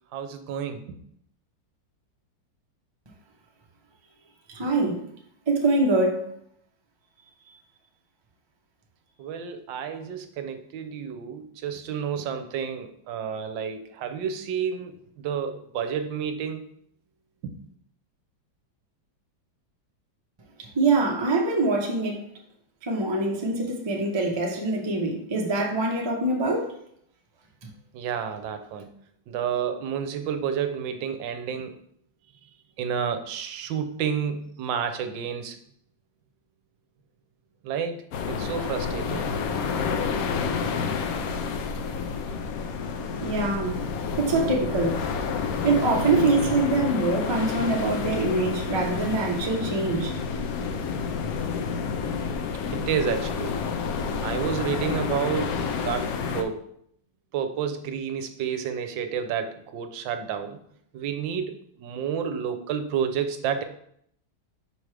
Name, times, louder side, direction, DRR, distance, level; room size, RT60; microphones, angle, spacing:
voice 1, 0.1-0.8 9.2-16.6 17.4-17.5 27.9-28.9 29.3-31.7 32.8-35.6 37.6-37.9 38.3-39.3 39.6-39.7 52.7-53.5 54.2-55.6 55.8-56.7 57.3-60.6 60.9-63.6, right 7 dB, 75° right, 1.3 m, -30 dB
voice 2, 4.5-5.0 5.5-6.3 20.7-22.3 22.8-26.7 43.2-43.8 44.2-45.0 45.6-50.1, right 2 dB, 40° right, 0.3 m, -24 dB
sound 1, 38.1-56.4, left 5 dB, 80° left, 0.8 m, -29 dB
6.0 x 5.1 x 3.3 m
omnidirectional pair, 2.1 m